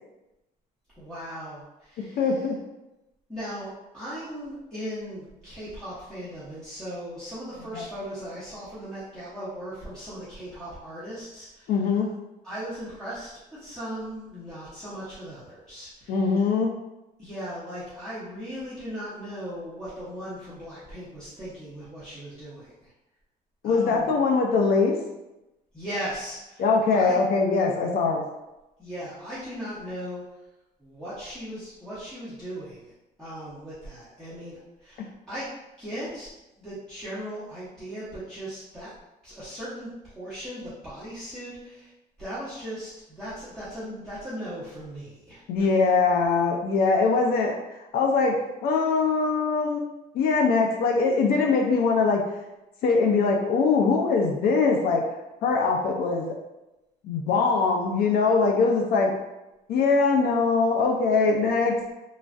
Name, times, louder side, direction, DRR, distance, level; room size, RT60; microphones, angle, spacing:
voice 1, 1.0-2.4 3.3-11.9 12.4-16.5 17.2-22.9 23.6-24.1 25.7-26.6 26.9-27.2 28.8-30.2 30.8-32.9 33.2-35.5 35.8-36.3 36.6-38.9 39.2-41.9 42.2-45.9, equal, 5° left, -12 dB, 0.9 m, -38 dB
voice 2, 2.2-2.6 7.7-7.8 11.7-12.1 16.1-16.7 23.6-24.9 26.6-28.3 45.5-47.6 47.9-49.8 50.1-52.2 52.8-55.0 55.4-56.3 57.0-59.1 59.7-61.8, left 4 dB, 65° left, 1 dB, 0.4 m, -22 dB
3.1 x 2.3 x 2.5 m, 0.98 s
cardioid pair, 110°, 17 cm